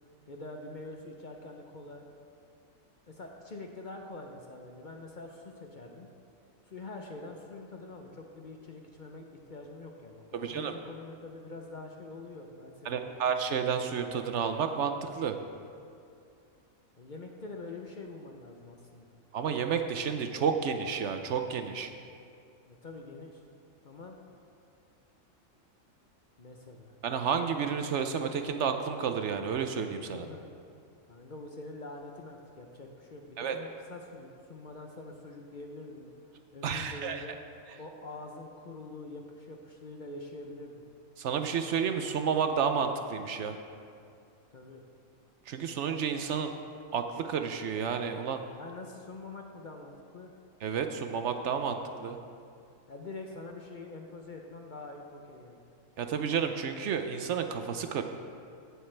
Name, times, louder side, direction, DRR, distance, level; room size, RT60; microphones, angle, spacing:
voice 1, 0.3-2.0 3.1-6.1 6.7-13.2 17.0-19.1 22.7-23.4 23.8-24.2 26.4-27.0 30.1-30.4 31.1-36.1 36.5-37.4 37.8-40.8 44.5-44.8 48.6-50.3 52.9-55.6, left 2 dB, 45° left, 2 dB, 0.7 m, -45 dB
voice 2, 10.3-10.7 12.8-15.4 19.3-21.9 27.0-30.3 33.4-33.6 36.6-37.3 41.2-43.6 45.5-46.5 46.9-48.4 50.6-52.2 56.0-58.0, right 6 dB, 65° right, 7 dB, 0.8 m, -31 dB
15.5 x 8.0 x 3.3 m, 2.4 s
omnidirectional pair, 1.4 m